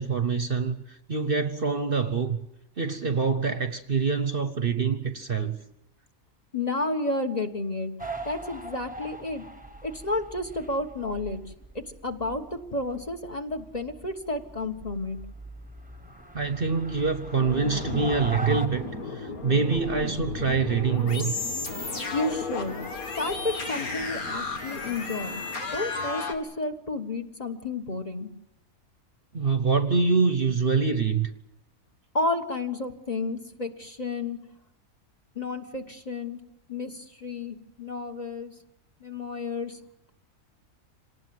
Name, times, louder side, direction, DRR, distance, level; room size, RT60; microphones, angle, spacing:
voice 1, 0.0-2.4 2.8-5.6 16.3-21.3 29.3-31.3, right 5 dB, 45° right, 9 dB, 1.1 m, -25 dB
voice 2, 6.5-7.9 8.2-9.4 9.8-11.4 11.7-15.2 22.1-22.8 23.2-25.4 25.7-28.3 32.1-34.4 35.3-36.4 36.7-38.5 39.0-39.8, left 2 dB, 30° left, 4 dB, 1.5 m, -31 dB
sound 1, 8.0-18.7, right 1 dB, 5° right, 1.2 m, -41 dB
sound 2, 17.4-26.4, left 3 dB, 90° left, 2.7 m, -33 dB
26.5 x 19.0 x 7.8 m, 0.85 s
omnidirectional pair, 1.5 m